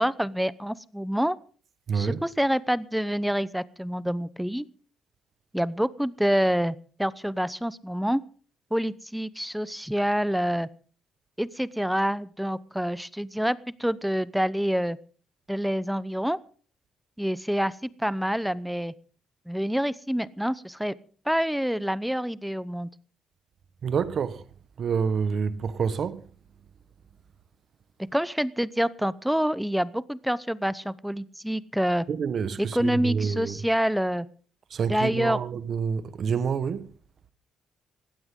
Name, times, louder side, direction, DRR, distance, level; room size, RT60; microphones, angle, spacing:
voice 1, 0.0-1.4 1.9-4.7 5.5-8.2 8.7-10.7 11.4-15.0 15.5-16.4 17.2-18.9 19.5-20.9 21.3-22.9 28.1-32.1 32.6-34.3 34.9-35.4, equal, ahead, 0.8 m, -27 dB
voice 2, 1.9-2.2 23.8-24.4 24.8-26.2 32.1-33.6 34.7-36.9, right 6 dB, 55° right, 1.3 m, -27 dB
19.5 x 15.5 x 3.8 m
cardioid pair, 90°, 0 cm